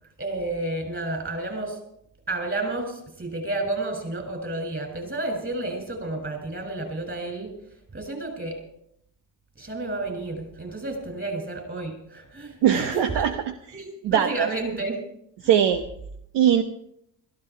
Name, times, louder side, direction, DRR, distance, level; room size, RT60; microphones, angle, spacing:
voice 1, 0.2-1.8 2.3-7.5 7.9-8.6 9.6-13.3 13.7-15.0 15.4-15.5, right 2 dB, 25° right, 3 dB, 6.7 m, -31 dB
voice 2, 12.6-13.3 13.7-14.5 15.4-15.8 16.3-16.6, right 9 dB, 60° right, 9 dB, 1.1 m, -21 dB
16.5 x 14.0 x 4.6 m, 0.75 s
hypercardioid pair, 70°, 47 cm